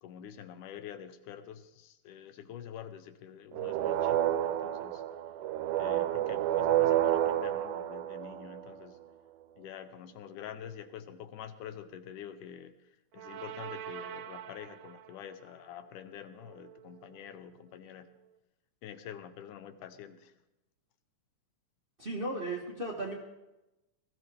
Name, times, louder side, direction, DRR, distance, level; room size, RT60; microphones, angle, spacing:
voice 1, 0.0-5.0 5.8-9.0 9.6-18.2 18.8-20.3, left 9 dB, 90° left, 11 dB, 2.4 m, -47 dB
sound 1, 3.5-8.9 13.2-14.9, right 12 dB, 90° right, 2.2 m, -31 dB
voice 2, 22.0-23.1, right 1 dB, 30° right, -1 dB, 1.0 m, -35 dB
20.0 x 14.5 x 3.5 m, 0.96 s
omnidirectional pair, 3.5 m